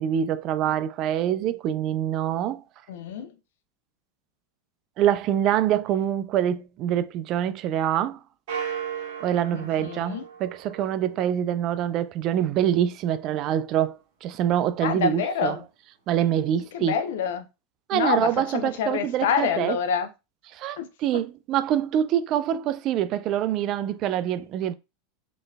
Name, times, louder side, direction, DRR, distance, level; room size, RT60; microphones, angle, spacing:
voice 1, 0.0-2.6 5.0-8.2 9.2-15.6 16.1-17.0 17.9-19.8 20.5-24.7, right 10 dB, 45° right, 0.3 m, -25 dB
voice 2, 2.9-3.3 9.5-10.2 14.8-15.6 16.7-17.4 17.9-20.1 20.8-20.9, left 7 dB, 65° left, 0.6 m, -27 dB
sound 1, 8.5-11.2, right 7 dB, 60° right, 1.2 m, -35 dB
4.0 x 3.2 x 2.2 m
hypercardioid pair, 85°, 0 cm